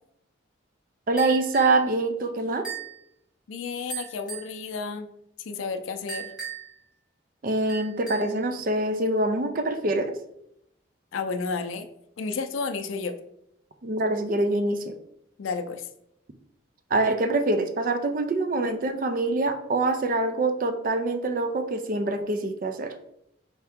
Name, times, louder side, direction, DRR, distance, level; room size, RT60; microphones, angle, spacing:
voice 1, 1.1-2.7 7.4-10.2 13.8-14.9 16.9-22.9, right 2 dB, 45° right, 7 dB, 0.4 m, -25 dB
sound 1, 1.2-1.8 2.6-3.0 3.9-4.5 6.1-6.8 7.7-8.4, right 7 dB, 5° right, 1.2 m, -37 dB
voice 2, 3.5-5.1 5.4-6.3 11.1-11.9 12.2-13.2 15.4-15.9, left 4 dB, 85° left, 7 dB, 0.4 m, -31 dB
4.4 x 2.8 x 3.5 m, 0.78 s
head